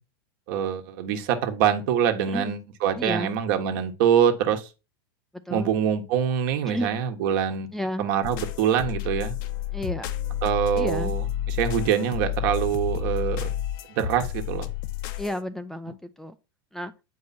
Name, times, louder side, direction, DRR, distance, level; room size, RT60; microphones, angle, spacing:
voice 1, 0.5-4.7 5.5-7.7 8.0-9.3 10.4-13.5 13.9-14.7, right 9 dB, 55° right, 1.4 m, -24 dB
voice 2, 3.0-3.3 5.5-5.7 6.7-6.9 7.7-8.1 9.7-10.1 10.7-11.1 15.2-16.3 16.7-16.9, left 1 dB, ahead, 0.4 m, -31 dB
sound 1, 8.2-15.4, left 11 dB, 55° left, 0.8 m, -30 dB
8.2 x 4.8 x 4.2 m
hypercardioid pair, 125°, 13 cm